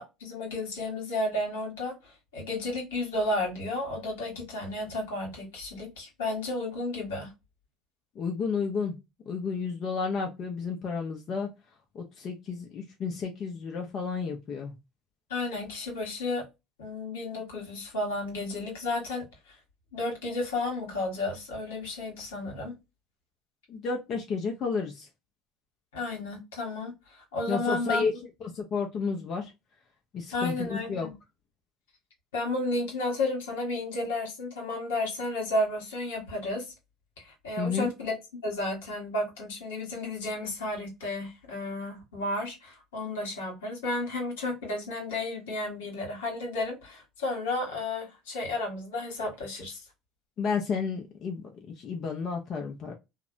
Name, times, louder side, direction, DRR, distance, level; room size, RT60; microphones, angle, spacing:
voice 1, 0.0-7.3 15.3-16.4 16.8-19.5 19.9-22.7 25.9-28.0 30.3-31.1 32.3-36.7 37.2-38.2 38.4-49.8, left 2 dB, 80° left, 1.2 m, -32 dB
voice 2, 8.2-9.0 9.3-11.5 11.9-14.7 23.7-25.1 27.5-28.1 28.4-29.5 30.1-31.1 37.6-37.9 50.4-51.5 51.8-52.9, left 5 dB, 50° left, 0.7 m, -31 dB
2.6 x 2.1 x 2.4 m
hypercardioid pair, 75°, 0 cm